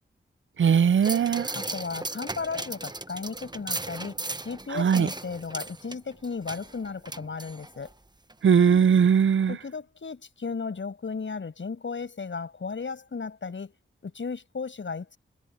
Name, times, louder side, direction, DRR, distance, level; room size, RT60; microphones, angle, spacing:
voice 1, 0.6-1.5 4.7-5.1 8.4-9.6, right 7 dB, 70° right, 0.6 m, -20 dB
sound 1, 1.0-7.9 8.3-8.4, right 2 dB, 20° right, 1.2 m, -37 dB
voice 2, 1.5-4.2 4.4-7.9 9.5-13.8 14.0-15.2, left 5 dB, 65° left, 6.8 m, -35 dB
cardioid pair, 50°, 21 cm